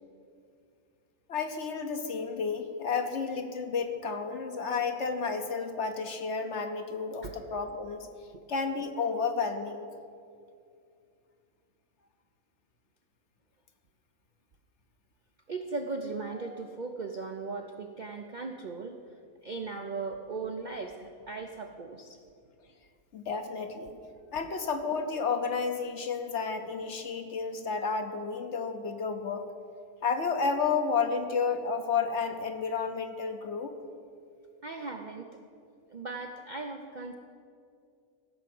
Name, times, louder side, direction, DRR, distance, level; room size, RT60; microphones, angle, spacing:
voice 1, 1.3-8.1 8.5-9.9 23.1-24.0 24.3-29.4 30.0-33.7, left 5 dB, 55° left, 6 dB, 1.1 m, -31 dB
voice 2, 15.5-19.0 19.4-22.2 34.6-35.3 35.9-37.1, right 3 dB, 50° right, 4 dB, 0.5 m, -38 dB
15.5 x 6.0 x 7.7 m, 2.4 s
omnidirectional pair, 1.5 m